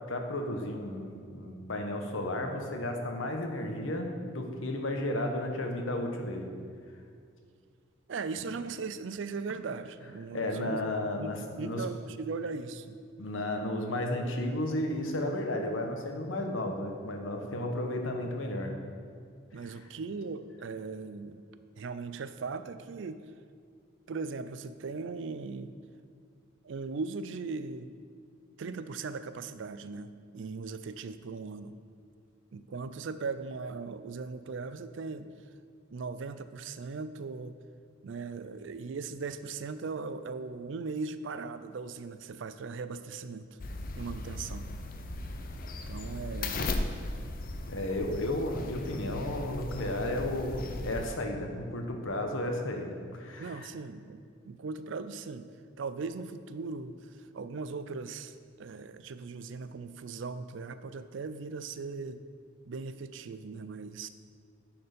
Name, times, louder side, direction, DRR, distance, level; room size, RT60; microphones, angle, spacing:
voice 1, 0.0-6.4 10.3-11.8 13.2-18.7 46.5-46.7 47.7-53.7, left 1 dB, 75° left, 3 dB, 1.0 m, -33 dB
voice 2, 8.1-13.0 19.5-21.4 21.8-23.2 24.1-25.8 26.6-27.9 28.6-31.8 32.5-35.3 35.9-37.6 38.0-43.5 44.0-44.7 45.9-46.7 53.4-55.5 55.8-62.2 62.7-64.1, right 4 dB, 65° right, 11 dB, 0.4 m, -39 dB
sound 1, 43.6-51.1, left 2 dB, 45° left, 0.5 m, -37 dB
10.0 x 4.4 x 5.2 m, 2.2 s
head